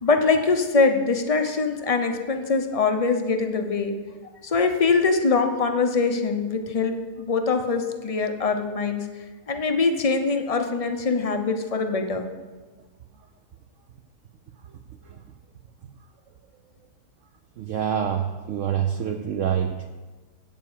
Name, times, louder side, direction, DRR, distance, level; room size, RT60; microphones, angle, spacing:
voice 1, 0.0-3.9 4.4-9.0 9.5-12.2, left 4 dB, 40° left, 6 dB, 0.5 m, -23 dB
voice 2, 17.6-19.9, right 8 dB, 65° right, 6 dB, 0.8 m, -26 dB
8.6 x 7.3 x 7.2 m, 1.3 s
omnidirectional pair, 1.7 m